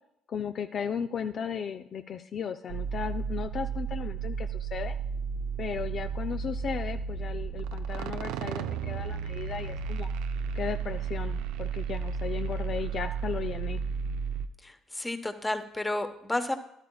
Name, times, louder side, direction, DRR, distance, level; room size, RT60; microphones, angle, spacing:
voice 1, 0.3-5.0 5.6-10.1 10.5-13.8, left 7 dB, 55° left, 7 dB, 0.4 m, -35 dB
sound 1, 2.7-14.5, right 6 dB, 80° right, 0.4 m, -33 dB
voice 2, 14.6-16.6, left 2 dB, 15° left, 8 dB, 1.1 m, -31 dB
12.5 x 12.0 x 2.3 m, 0.80 s
supercardioid pair, 65°, 0 cm